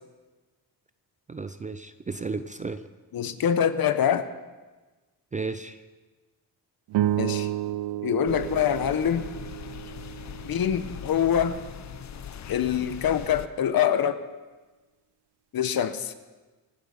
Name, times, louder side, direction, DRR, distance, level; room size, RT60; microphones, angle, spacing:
voice 1, 1.3-2.8 5.3-5.8, right 4 dB, 20° right, 11 dB, 0.4 m, -33 dB
voice 2, 3.1-4.3 7.2-7.5 8.0-9.3 10.4-11.6 12.5-14.2 15.5-16.1, left 9 dB, 60° left, 11 dB, 1.0 m, -25 dB
sound 1, 6.9-11.4, right 13 dB, 85° right, 0.6 m, -31 dB
sound 2, 8.3-13.5, left 9 dB, 45° left, 0.6 m, -40 dB
25.5 x 8.6 x 5.6 m, 1.3 s
wide cardioid pair, 175°, 40 cm